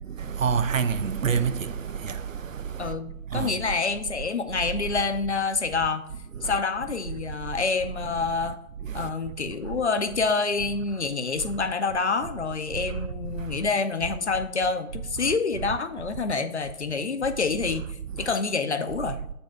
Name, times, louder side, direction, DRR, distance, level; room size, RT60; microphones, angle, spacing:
voice 1, 0.2-2.9 3.3-3.6 6.4-6.6 8.8-9.1 15.2-15.3 18.2-18.3, right 6 dB, 60° right, 0.5 m, -28 dB
voice 2, 2.8-6.0 6.4-8.6 8.9-17.9 18.2-19.2, left 4 dB, 50° left, 0.6 m, -27 dB
6.9 x 4.2 x 4.7 m
figure-of-eight pair, 155°, 45 cm